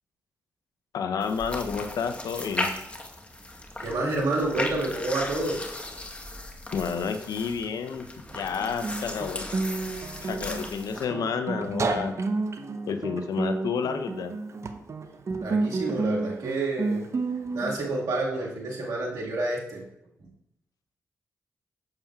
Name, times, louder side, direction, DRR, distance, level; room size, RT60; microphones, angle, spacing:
voice 1, 0.9-2.7 6.7-8.1 8.3-9.5 10.2-12.1 12.8-14.3, left 6 dB, 80° left, 8 dB, 0.6 m, -30 dB
sound 1, 1.2-11.1, left 1 dB, 20° left, 1.1 m, -37 dB
voice 2, 3.8-5.6 15.4-17.1 17.5-19.8 20.2-20.3, right 2 dB, 75° right, -3 dB, 1.7 m, -29 dB
Guitar, 8.3-17.8, right 3 dB, 50° right, 0.6 m, -30 dB
7.0 x 6.6 x 2.3 m, 0.82 s
supercardioid pair, 50°, 6 cm